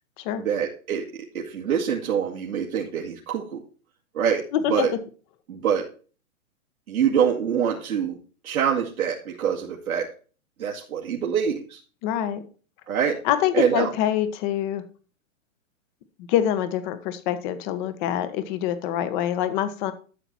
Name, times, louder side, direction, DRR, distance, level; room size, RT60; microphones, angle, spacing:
voice 1, 0.4-3.6 4.1-4.9 5.5-5.9 6.9-8.2 8.4-10.1 10.6-11.8 12.9-13.2 13.5-13.9, right 8 dB, 85° right, -2 dB, 2.3 m, -25 dB
voice 2, 4.5-4.9 12.0-12.4 13.2-14.8 16.2-19.9, left 11 dB, 35° left, 11 dB, 1.5 m, -25 dB
12.0 x 7.0 x 4.5 m, 0.38 s
hypercardioid pair, 145°, 42 cm